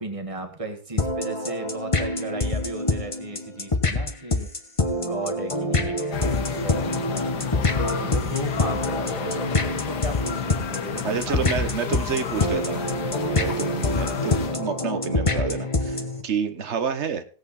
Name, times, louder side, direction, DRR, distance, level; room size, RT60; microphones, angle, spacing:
voice 1, 0.0-4.5 4.9-7.5 7.7-12.0 13.9-14.6, right 2 dB, 20° right, 5 dB, 1.7 m, -35 dB
sound 1, 1.0-16.2, left 2 dB, 25° left, 0.9 m, -26 dB
sound 2, 6.1-14.6, left 8 dB, 80° left, 1.7 m, -32 dB
voice 2, 11.0-12.9 13.3-17.2, right 6 dB, 50° right, 11 dB, 1.2 m, -29 dB
17.5 x 8.0 x 4.2 m, 0.42 s
omnidirectional pair, 1.7 m